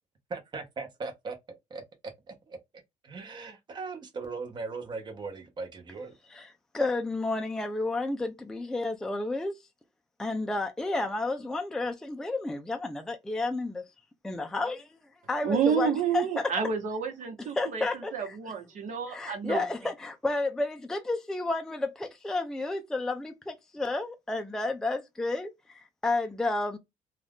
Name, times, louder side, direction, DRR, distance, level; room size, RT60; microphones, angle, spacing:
voice 1, 0.3-1.8 2.3-2.6 3.0-6.1, right 4 dB, 35° right, 0.9 m, -39 dB
voice 2, 6.7-9.6 10.2-13.8 14.2-14.9 15.3-16.4 17.4-18.4 19.1-26.8, left 2 dB, 5° left, 0.4 m, -31 dB
voice 3, 15.4-17.8 18.1-19.6, right 7 dB, 60° right, 1.1 m, -29 dB
2.5 x 2.4 x 3.4 m
cardioid pair, 155°, 14 cm